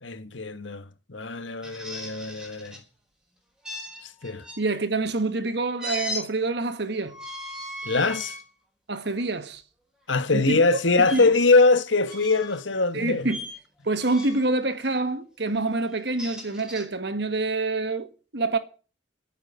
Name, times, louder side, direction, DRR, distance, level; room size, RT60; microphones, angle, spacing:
voice 1, 0.0-2.8 4.0-4.4 7.8-8.4 10.1-13.3, left 3 dB, 90° left, 1.6 m, -23 dB
sound 1, 1.6-2.8 3.6-4.6 5.8-6.2 7.1-8.4 9.0-9.2 11.0-11.2 12.1-12.6 13.3-13.6 14.0-14.5 15.9-16.9, left 1 dB, 5° right, 4.3 m, -37 dB
voice 2, 4.6-7.1 8.9-9.6 10.3-10.6 11.0-11.2 12.9-13.5 13.9-18.6, right 2 dB, 60° right, 1.7 m, -26 dB
12.5 x 9.2 x 8.9 m
head